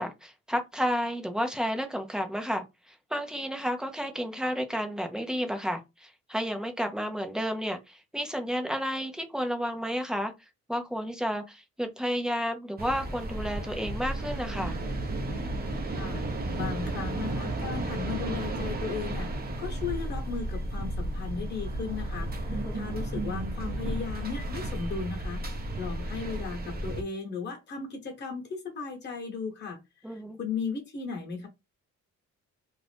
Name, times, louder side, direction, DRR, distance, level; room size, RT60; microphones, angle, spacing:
voice 1, 0.0-10.3 10.7-14.8 22.5-22.8 30.0-30.4, equal, ahead, 0.7 m, -31 dB
sound 1, 12.8-27.0, right 1 dB, 30° right, 0.8 m, -33 dB
voice 2, 16.0-16.3 16.5-31.5, left 5 dB, 35° left, 1.3 m, -36 dB
2.7 x 2.4 x 3.4 m
cardioid pair, 90°, 30 cm